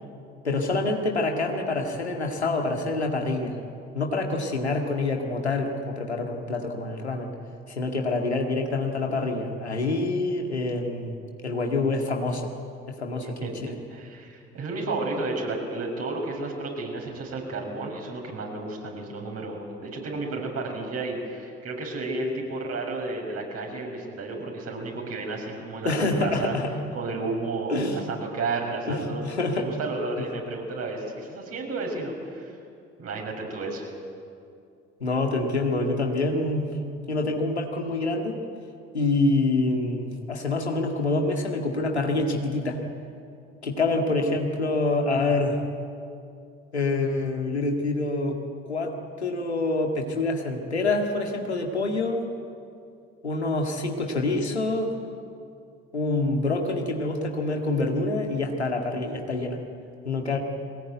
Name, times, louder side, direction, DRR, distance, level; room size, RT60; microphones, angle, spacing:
voice 1, 0.4-3.6 3.9-7.3 7.7-11.1 11.4-12.5 12.9-13.8 25.8-26.7 27.7-28.0 28.9-29.7 35.0-36.7 37.1-38.4 38.9-42.8 43.6-45.6 46.7-48.4 48.6-52.3 53.2-55.0 55.9-59.6 60.1-60.4, left 2 dB, 90° left, 2 dB, 2.0 m, -26 dB
voice 2, 13.9-26.5 26.9-32.6 33.0-33.8, right 3 dB, 50° right, 1 dB, 7.0 m, -32 dB
22.5 x 19.0 x 9.4 m, 2.4 s
figure-of-eight pair, 55°, 32 cm